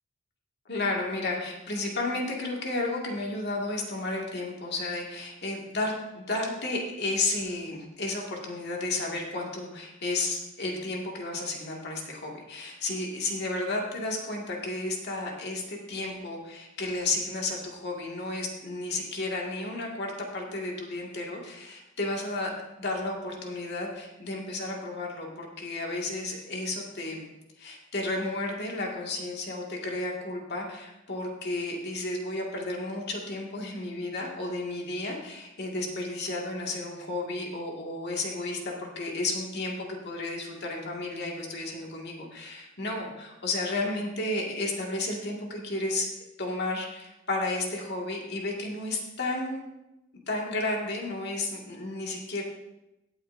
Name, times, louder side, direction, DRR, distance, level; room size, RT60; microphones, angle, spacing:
voice 1, 0.7-22.5 22.8-27.3 27.6-46.1 46.4-49.7 50.3-52.4, left 2 dB, 55° left, -1 dB, 2.0 m, -32 dB
17.0 x 8.7 x 2.7 m, 0.93 s
head